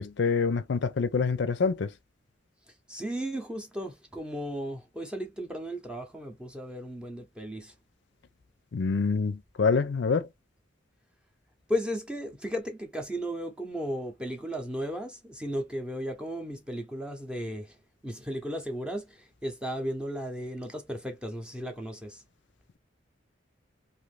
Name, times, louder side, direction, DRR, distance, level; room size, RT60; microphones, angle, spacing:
voice 1, 0.0-1.9 8.7-10.3, left 5 dB, 65° left, 0.4 m, -26 dB
voice 2, 2.9-7.7 11.7-17.7 18.0-22.2, equal, 5° right, 0.7 m, -35 dB
2.5 x 2.5 x 3.2 m
head